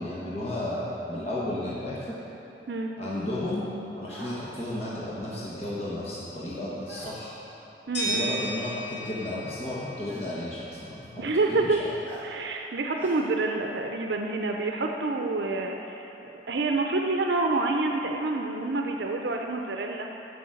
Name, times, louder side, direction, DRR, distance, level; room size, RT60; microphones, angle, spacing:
voice 1, 0.0-2.2 3.0-7.4 7.9-11.2 11.5-11.9, left 1 dB, 35° left, -7 dB, 1.3 m, -33 dB
sound 1, 4.1-4.4 6.8-7.1 8.4-8.5 10.1-10.3 12.0-12.3 13.0-13.2, right 1 dB, 10° right, 1.7 m, -45 dB
sound 2, 7.9-10.9, right 2 dB, 65° left, 2.6 m, -34 dB
voice 2, 7.9-8.4 11.2-11.8 12.2-16.1 16.5-20.1, right 3 dB, 70° right, 2 dB, 0.6 m, -27 dB
7.7 x 7.0 x 7.8 m, 3.0 s
head